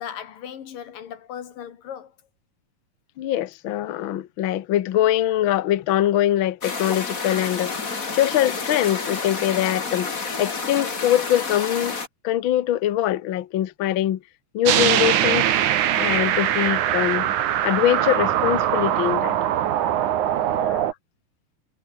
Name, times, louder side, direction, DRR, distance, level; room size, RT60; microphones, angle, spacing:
voice 1, 0.0-2.2 20.2-20.6, left 9 dB, 85° left, 4.0 m, -37 dB
voice 2, 3.2-12.0 12.2-14.2 14.5-15.5 16.0-17.3 17.6-19.4 20.5-20.9, left 12 dB, 70° left, 1.2 m, -23 dB
sound 1, 6.6-12.1, left 4 dB, 25° left, 2.6 m, -30 dB
sound 2, 14.6-20.9, right 11 dB, 70° right, 2.8 m, -22 dB
omnidirectional pair, 3.8 m